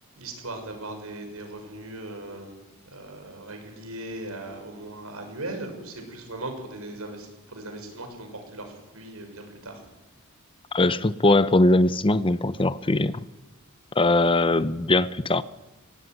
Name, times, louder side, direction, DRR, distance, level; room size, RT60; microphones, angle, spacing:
voice 1, 0.2-2.6 2.9-9.8, right 2 dB, 85° right, 5 dB, 6.5 m, -38 dB
voice 2, 10.7-13.2 14.0-15.4, left 2 dB, 25° left, 15 dB, 0.7 m, -21 dB
24.0 x 18.0 x 9.3 m, 1.0 s
head